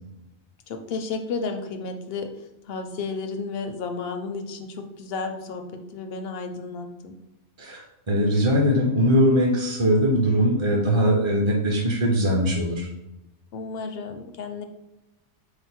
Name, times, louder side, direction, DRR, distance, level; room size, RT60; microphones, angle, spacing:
voice 1, 0.7-2.4 2.7-7.1 13.5-14.6, left 4 dB, 65° left, 5 dB, 0.7 m, -32 dB
voice 2, 7.6-12.9, equal, 35° right, -1 dB, 0.6 m, -21 dB
4.8 x 2.0 x 4.3 m, 0.93 s
omnidirectional pair, 1.2 m